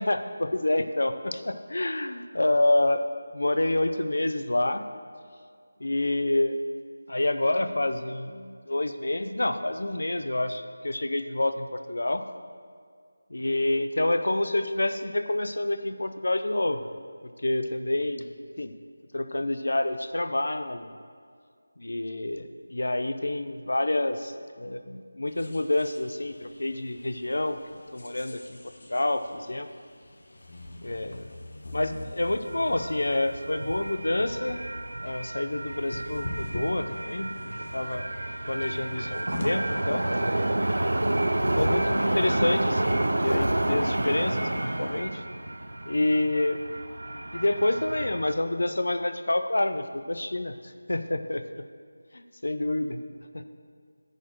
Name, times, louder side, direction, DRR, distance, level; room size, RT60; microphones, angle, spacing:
voice 1, 0.0-3.0 3.3-4.8 5.8-6.6 7.1-12.3 13.3-16.8 17.4-18.3 18.6-18.7 19.1-20.9 21.8-28.6 28.9-29.7 30.8-31.3 31.7-34.6 35.0-38.1 38.5-40.1 41.6-45.2 45.9-46.6 47.3-51.6 52.1-53.0 53.3-53.4, left 2 dB, 60° left, 9 dB, 0.5 m, -28 dB
sound 1, 25.3-40.3, left 1 dB, 45° left, 1.0 m, -43 dB
sound 2, 32.5-48.3, right 1 dB, 85° right, 0.6 m, -29 dB
10.5 x 4.3 x 7.6 m, 2.1 s
figure-of-eight pair, 180°, 0 cm